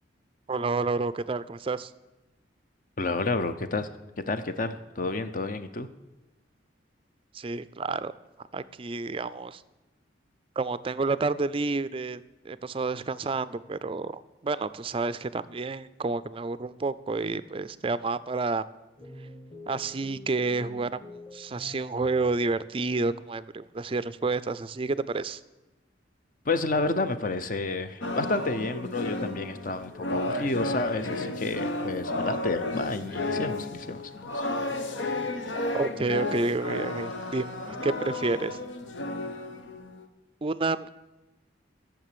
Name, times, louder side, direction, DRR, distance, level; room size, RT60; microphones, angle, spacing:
voice 1, 0.5-1.9 7.3-8.1 8.5-9.6 10.6-18.6 19.7-21.0 21.3-25.4 35.7-37.5 37.8-38.6 40.4-40.9, right 3 dB, 30° right, 15 dB, 0.4 m, -29 dB
voice 2, 3.0-3.9 4.2-5.9 26.4-34.4, left 3 dB, 45° left, 11 dB, 0.7 m, -30 dB
sound 1, 19.0-22.7, left 1 dB, 25° left, 1.7 m, -46 dB
sound 2, 28.0-40.1, left 2 dB, 80° left, 1.1 m, -33 dB
14.0 x 7.3 x 6.8 m, 1.1 s
head